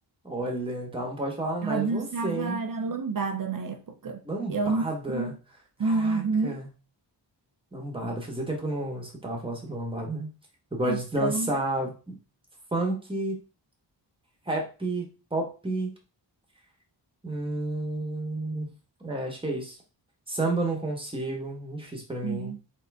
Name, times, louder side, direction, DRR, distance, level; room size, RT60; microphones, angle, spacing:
voice 1, 0.2-2.6 4.2-5.3 5.8-6.7 7.7-10.3 10.7-12.2 12.7-13.4 14.5-15.0 15.3-15.9 17.2-18.7 19.0-19.8 20.3-22.5, right 2 dB, 10° right, 1.4 m, -31 dB
voice 2, 1.6-4.2 4.5-4.8 5.1-5.3 5.8-6.6 10.8-11.5 22.2-22.6, right 4 dB, 50° right, 0.7 m, -28 dB
3.8 x 3.7 x 3.5 m
wide cardioid pair, 125°, 44 cm